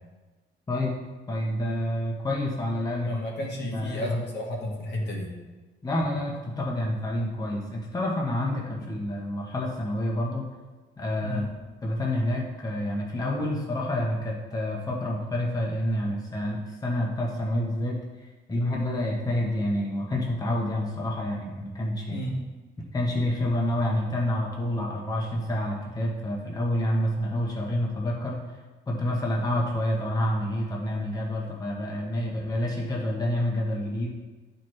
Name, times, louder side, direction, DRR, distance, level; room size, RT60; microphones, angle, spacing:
voice 1, 1.3-3.2 3.6-4.1 5.8-10.5 11.0-11.5 11.8-18.0 18.5-22.3 22.9-28.4 28.9-34.1, left 1 dB, 20° left, -2 dB, 1.0 m, -28 dB
voice 2, 3.1-5.3 8.8-8.9 11.2-11.5 22.1-22.4, left 1 dB, 65° left, -2 dB, 1.7 m, -32 dB
12.0 x 4.4 x 3.2 m, 1.3 s
cardioid pair, 145°, 19 cm